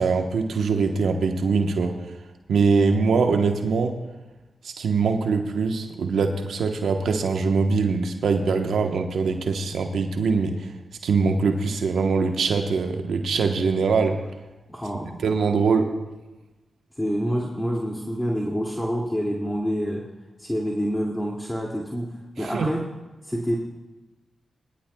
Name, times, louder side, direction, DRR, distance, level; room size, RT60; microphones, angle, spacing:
voice 1, 0.0-1.9 2.5-4.0 4.6-10.7 11.0-14.2 15.2-15.9 22.4-22.7, right 4 dB, 80° right, 5 dB, 1.1 m, -23 dB
voice 2, 14.7-15.2 17.0-20.1 20.4-22.9 23.2-23.5, equal, 10° left, -2 dB, 2.4 m, -27 dB
22.0 x 12.0 x 2.3 m, 1.1 s
supercardioid pair, 40°, 0 cm